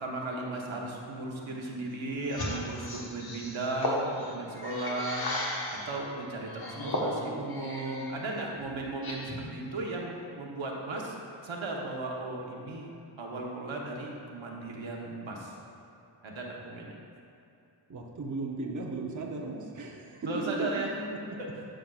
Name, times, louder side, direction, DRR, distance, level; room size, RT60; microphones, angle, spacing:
voice 1, 0.0-11.1 11.4-15.5 16.2-17.0 20.2-20.9 21.4-21.5, right 2 dB, 75° right, -2 dB, 1.1 m, -36 dB
sound 1, 2.2-5.9 6.4-8.1 8.5-9.5, left 1 dB, 50° left, 1.2 m, -35 dB
voice 2, 17.9-20.3 20.6-21.0, right 3 dB, 40° right, -1 dB, 0.7 m, -36 dB
11.5 x 5.1 x 2.4 m, 2.7 s
wide cardioid pair, 60°, 47 cm